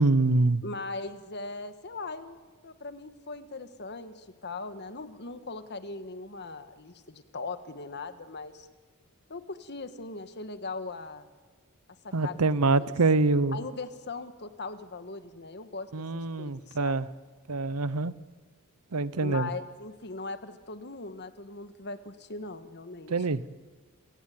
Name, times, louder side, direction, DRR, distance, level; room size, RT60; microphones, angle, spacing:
voice 1, 0.0-0.6 12.1-13.6 15.9-17.1 17.5-18.2 18.9-19.5 23.1-23.4, right 3 dB, 85° right, 18 dB, 0.8 m, -25 dB
voice 2, 0.6-8.7 9.3-11.3 12.0-12.4 13.5-17.0 19.2-23.1, left 3 dB, 50° left, 10 dB, 1.6 m, -39 dB
29.0 x 17.5 x 9.5 m, 1.4 s
head